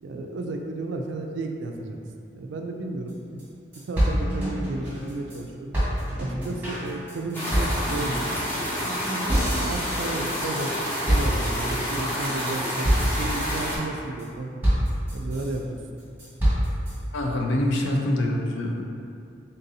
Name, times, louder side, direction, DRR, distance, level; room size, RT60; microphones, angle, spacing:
voice 1, 0.0-2.0 2.3-3.4 3.9-5.8 6.2-8.3 8.7-8.9 9.5-14.5 15.1-15.8, right 2 dB, 70° right, 3 dB, 0.3 m, -33 dB
sound 1, 3.1-3.2 3.4-3.5 3.7-5.4 5.7-10.8 11.1-11.8 12.2-12.5 12.8-13.3 13.7-14.2 14.6-15.6 16.0-16.9, equal, 10° right, 1.3 m, -26 dB
sound 2, 7.3-13.8, equal, 10° left, 0.7 m, -29 dB
voice 2, 17.1-18.8, left 1 dB, 75° left, 1 dB, 0.5 m, -25 dB
3.9 x 3.8 x 2.7 m, 2.4 s
head